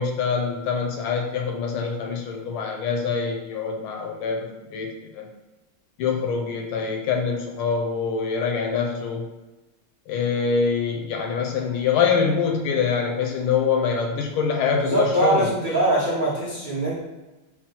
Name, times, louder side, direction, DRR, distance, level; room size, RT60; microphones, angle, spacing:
voice 1, 0.0-5.3 6.0-9.2 10.1-15.5, left 5 dB, 85° left, 2 dB, 1.5 m, -24 dB
voice 2, 14.7-17.0, right 1 dB, 85° right, -8 dB, 0.4 m, -23 dB
4.3 x 2.1 x 4.3 m, 1.1 s
omnidirectional pair, 2.2 m